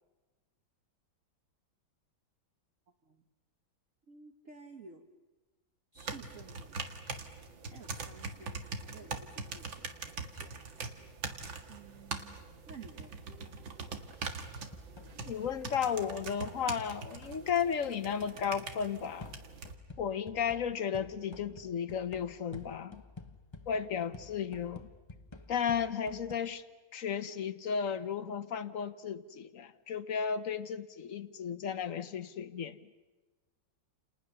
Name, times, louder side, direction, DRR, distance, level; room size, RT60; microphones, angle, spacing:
voice 1, 4.1-5.1 5.9-6.7 7.7-10.6 11.7-12.4 12.7-13.3, right 4 dB, 45° right, 1.7 m, -53 dB
sound 1, 6.0-19.7, right 4 dB, 80° right, 2.6 m, -43 dB
sound 2, 14.4-16.7 17.2-17.8 19.2-26.4, left 3 dB, 20° left, 0.8 m, -51 dB
voice 2, 15.2-19.3 20.0-23.0 23.7-24.9 25.5-26.6 26.9-32.8, left 7 dB, 50° left, 1.2 m, -34 dB
30.0 x 29.5 x 6.8 m
omnidirectional pair, 2.1 m